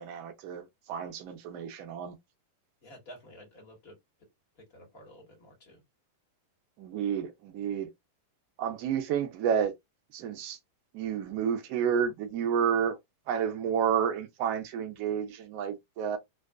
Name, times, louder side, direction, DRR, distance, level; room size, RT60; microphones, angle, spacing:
voice 1, 0.0-2.1 6.8-7.9 8.6-9.7 10.1-10.6 10.9-13.0 13.3-16.2, right 8 dB, 40° right, 0.5 m, -30 dB
voice 2, 2.8-4.0 4.6-5.8, equal, 40° left, 1.4 m, -51 dB
2.4 x 2.2 x 2.3 m
supercardioid pair, 165°, 0 cm